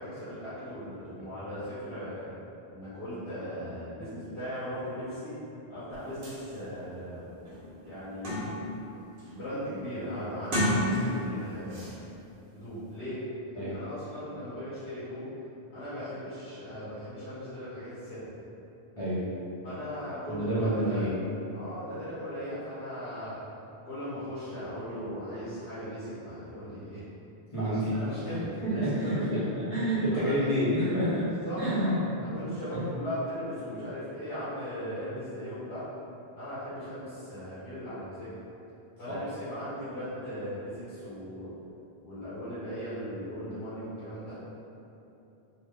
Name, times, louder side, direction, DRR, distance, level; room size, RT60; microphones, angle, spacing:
voice 1, 0.0-2.3 2.7-5.3 5.7-7.2 7.9-8.5 9.3-11.9 12.5-13.2 13.5-15.3 15.7-18.3 19.6-21.0 21.5-23.3 23.8-27.0 27.7-29.4 30.1-30.5 31.4-32.0 32.3-35.8 36.3-38.3 39.0-41.5 42.0-44.4, equal, 65° left, -14 dB, 1.2 m, -38 dB
sound 1, 5.9-6.0 6.2-6.4 6.9-7.0 7.4-8.8 9.2-9.5 10.3-11.3 11.7-11.9, equal, 60° right, 1.0 m, -31 dB
voice 2, 20.3-21.2 27.5-31.3 31.6-32.9 39.1-39.2, equal, 35° left, -12 dB, 0.8 m, -29 dB
3.0 x 2.2 x 3.4 m, 2.8 s
omnidirectional pair, 1.0 m